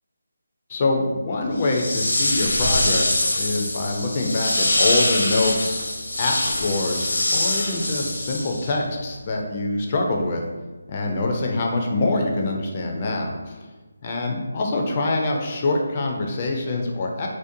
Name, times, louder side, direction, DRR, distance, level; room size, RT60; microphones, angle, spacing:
voice 1, 0.7-5.8 6.2-10.4 10.9-13.6 14.0-17.3, left 2 dB, 30° left, 1 dB, 0.3 m, -25 dB
sound 1, 1.6-8.8, left 1 dB, 75° left, 0.6 m, -24 dB
2.5 x 2.1 x 2.6 m, 1.2 s
figure-of-eight pair, 165°, 0 cm